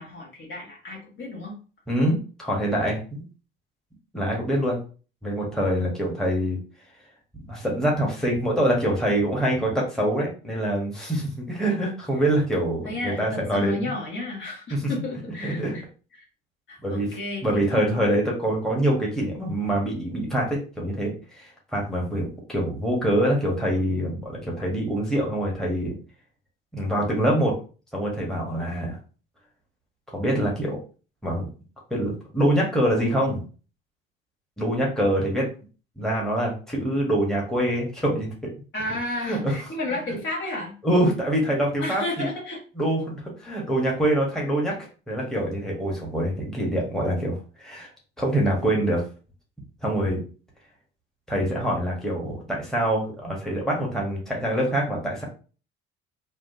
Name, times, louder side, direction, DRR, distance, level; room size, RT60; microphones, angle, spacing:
voice 1, 0.0-1.5 12.8-15.8 16.2-16.3 16.7-18.0 38.7-40.7 41.8-42.6, left 2 dB, 40° left, -2 dB, 1.3 m, -32 dB
voice 2, 1.9-3.2 4.1-4.8 5.2-6.6 7.5-13.9 15.4-15.8 16.8-25.9 26.7-27.6 27.9-29.0 30.1-30.8 31.2-31.5 31.9-33.4 34.6-35.5 36.0-38.3 39.2-39.5 39.9-40.2 40.8-42.3 42.8-47.9 48.2-49.0 49.8-50.2 51.3-55.2, right 1 dB, ahead, -3 dB, 1.3 m, -25 dB
3.4 x 2.3 x 2.7 m, 0.36 s
figure-of-eight pair, 55°, 29 cm